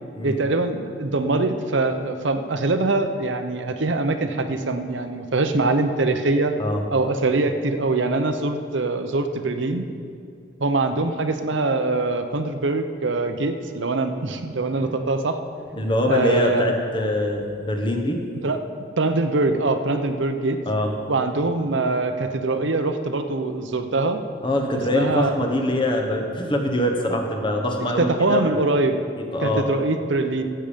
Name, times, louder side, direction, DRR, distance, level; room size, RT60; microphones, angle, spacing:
voice 1, 0.2-6.5 6.9-9.9 10.6-15.4 16.1-16.7 18.4-18.6 19.0-20.6 21.1-24.2 24.9-25.4 28.0-29.0 29.4-30.4, right 2 dB, 70° right, 7 dB, 0.8 m, -23 dB
voice 2, 15.7-18.2 20.6-20.9 24.4-28.6 29.3-29.6, left 1 dB, 25° left, 3 dB, 1.2 m, -23 dB
15.0 x 8.8 x 5.2 m, 2.4 s
head